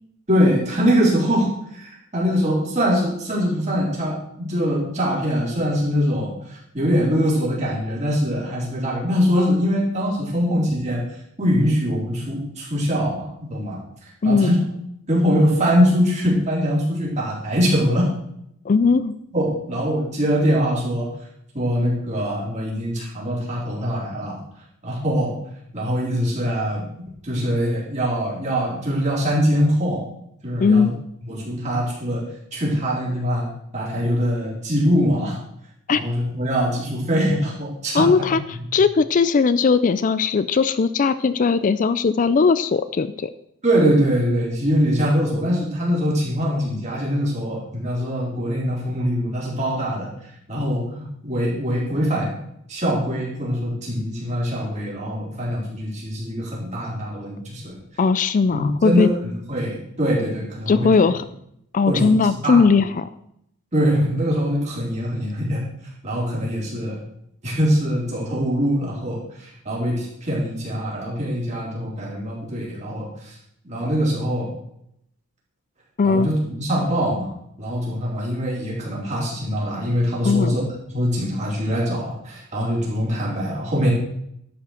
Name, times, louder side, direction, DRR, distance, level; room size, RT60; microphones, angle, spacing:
voice 1, 0.3-11.0 11.4-13.8 14.2-14.6 15.1-18.1 19.3-21.1 21.5-24.4 24.8-25.3 25.7-26.9 27.2-30.0 30.4-30.9 31.3-32.2 32.5-33.5 33.7-35.4 35.9-38.3 43.6-50.1 50.5-52.4 52.7-57.7 58.5-59.1 59.5-60.9 61.9-62.1 62.4-62.6 63.7-65.6 66.0-67.0 67.4-73.3 73.6-74.5 76.0-77.3 77.6-80.6 80.9-83.9, equal, 35° right, -5 dB, 4.1 m, -23 dB
voice 2, 14.2-14.5 18.7-19.1 30.6-30.9 35.9-36.0 37.9-43.3 58.0-59.1 60.7-61.3 61.7-63.1 76.0-76.3 80.2-80.6, left 5 dB, 40° left, 14 dB, 0.4 m, -18 dB
12.0 x 5.7 x 6.4 m, 0.75 s
head